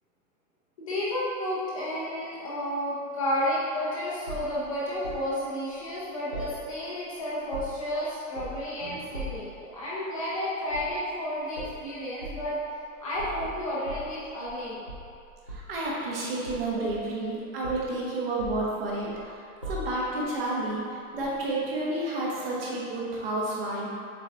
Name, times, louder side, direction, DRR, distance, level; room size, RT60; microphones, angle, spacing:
voice 1, 0.8-12.6 13.0-14.8 16.8-16.9, left 1 dB, 25° left, -8 dB, 0.7 m, -31 dB
sound 1, 4.3-5.3 6.3-7.1 7.3-7.9 8.3-8.7 9.1-9.5 10.7-11.0 11.5-11.8 12.2-12.5 13.1-14.6 14.9-15.8 16.4-17.3 17.6-17.9 18.4-19.2 19.6-20.2 21.2-21.3, equal, 25° right, 0.3 m, -39 dB
voice 2, 15.5-19.4 19.7-23.9, right 2 dB, 40° right, -5 dB, 1.2 m, -30 dB
7.4 x 3.9 x 3.4 m, 2.4 s
supercardioid pair, 180°, 42 cm